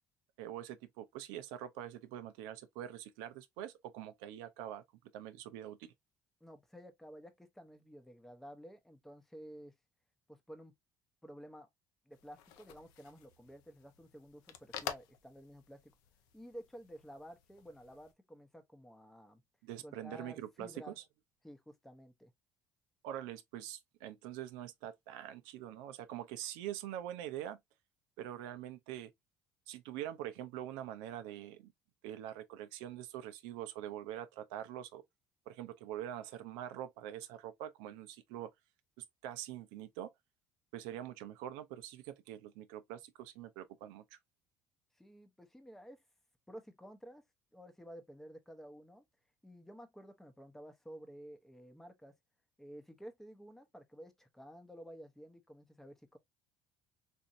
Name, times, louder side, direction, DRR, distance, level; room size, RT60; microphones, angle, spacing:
voice 1, 0.4-4.8 5.1-5.9 19.6-21.0 23.0-27.6 28.2-29.1 29.7-31.7 32.0-35.0 35.5-38.5 39.0-40.1 40.7-44.2, right 11 dB, 90° right, 0.5 m, -44 dB
voice 2, 6.4-9.7 10.3-10.7 11.2-11.7 12.1-15.9 16.3-19.4 19.8-21.0 21.4-22.3 44.9-46.0 46.5-47.2 47.5-49.0 49.4-52.1 52.6-56.2, equal, 5° left, 0.7 m, -52 dB
sound 1, 12.1-18.1, left 10 dB, 85° left, 0.6 m, -49 dB
4.2 x 2.6 x 2.4 m
cardioid pair, 105°, 7 cm